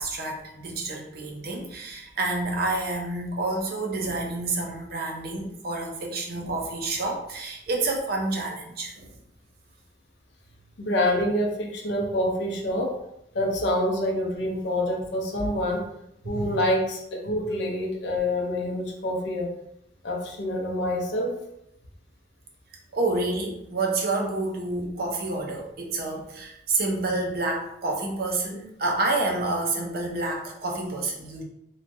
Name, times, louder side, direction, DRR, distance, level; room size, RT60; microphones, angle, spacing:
voice 1, 0.0-9.1 15.4-15.5 16.2-16.6 22.9-31.4, right 2 dB, 60° right, 1 dB, 0.6 m, -29 dB
voice 2, 10.8-13.0 13.3-15.8 16.2-19.5 20.0-21.3, left 1 dB, 80° left, 0 dB, 0.6 m, -26 dB
3.0 x 2.2 x 2.6 m, 0.78 s
head